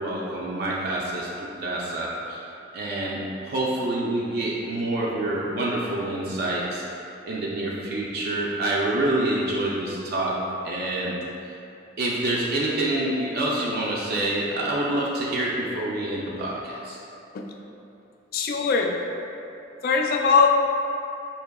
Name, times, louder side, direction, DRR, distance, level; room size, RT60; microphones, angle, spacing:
voice 1, 0.0-2.4 2.7-6.8 7.2-10.4 10.6-11.2 11.4-11.5 12.0-17.0, right 1 dB, 55° right, -5 dB, 0.4 m, -27 dB
voice 2, 18.3-18.9 19.8-20.5, left 5 dB, 50° left, 2 dB, 0.3 m, -20 dB
4.5 x 2.8 x 2.2 m, 2.7 s
head